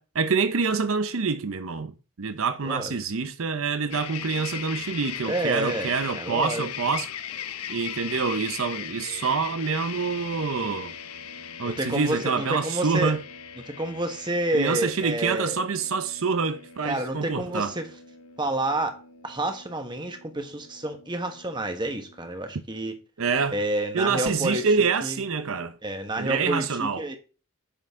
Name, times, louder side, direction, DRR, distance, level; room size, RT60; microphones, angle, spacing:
voice 1, 0.0-7.1 7.7-10.9 11.6-13.2 14.5-17.7 23.2-23.6 23.9-25.8 26.2-27.1, right 5 dB, 65° right, 0.7 m, -26 dB
voice 2, 2.6-2.9 5.3-6.7 10.6-10.8 11.6-13.2 13.8-15.6 16.8-17.9 18.4-19.0 19.2-22.9 23.5-25.2 25.8-27.2, right 1 dB, 20° right, 1.4 m, -29 dB
sound 1, 3.9-22.3, left 9 dB, 85° left, 0.8 m, -39 dB
10.0 x 7.5 x 3.7 m
head